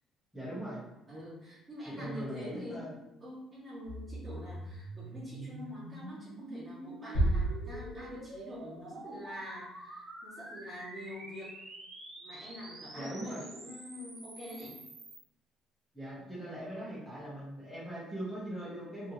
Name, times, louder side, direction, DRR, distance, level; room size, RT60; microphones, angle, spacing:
voice 1, 0.3-0.8 1.9-2.9 13.0-13.4 15.9-19.1, right 1 dB, 5° left, -9 dB, 0.8 m, -40 dB
voice 2, 1.1-2.9 3.2-11.5 12.2-14.7, left 1 dB, 15° right, -9 dB, 1.1 m, -45 dB
sound 1, 3.8-15.2, right 1 dB, 50° right, 0.7 m, -47 dB
sound 2, 7.1-8.5, right 2 dB, 90° left, 1.1 m, -31 dB
2.7 x 2.7 x 2.5 m, 0.89 s
cardioid pair, 165°, 0 cm